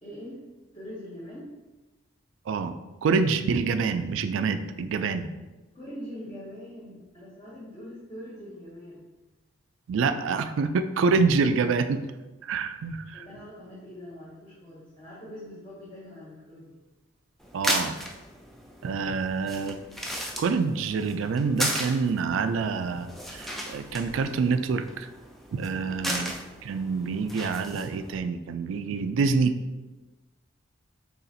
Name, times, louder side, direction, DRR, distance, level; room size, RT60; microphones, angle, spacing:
voice 1, 0.0-0.4 0.7-1.6 5.7-9.1 13.1-16.8 25.7-26.2, equal, 25° left, -8 dB, 0.8 m, -43 dB
voice 2, 3.0-5.3 9.9-12.0 12.4-13.2 17.5-18.0 18.8-19.8 20.4-25.1 25.5-26.3 26.6-29.5, right 4 dB, 75° right, 10 dB, 0.3 m, -26 dB
sound 1, 17.4-28.2, equal, ahead, 0.3 m, -35 dB
6.6 x 2.4 x 2.7 m, 1.2 s
head